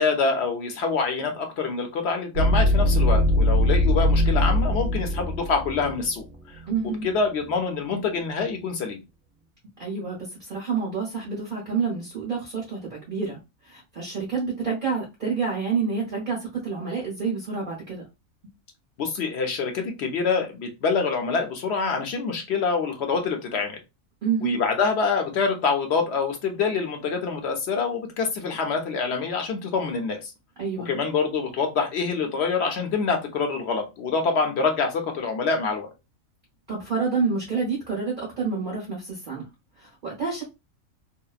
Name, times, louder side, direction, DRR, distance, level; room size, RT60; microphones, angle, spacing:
voice 1, 0.0-6.2 7.0-9.0 19.0-23.8 24.4-30.3 30.9-35.9, left 4 dB, 60° left, 4 dB, 0.8 m, -26 dB
sound 1, 2.4-6.9, left 1 dB, 75° right, 0.9 m, -21 dB
voice 2, 6.7-7.1 9.8-13.4 13.6-18.0 24.2-24.6 30.6-30.9 36.7-39.4 39.8-40.4, right 5 dB, 45° right, -3 dB, 0.8 m, -28 dB
2.8 x 2.0 x 2.3 m, 0.25 s
omnidirectional pair, 1.5 m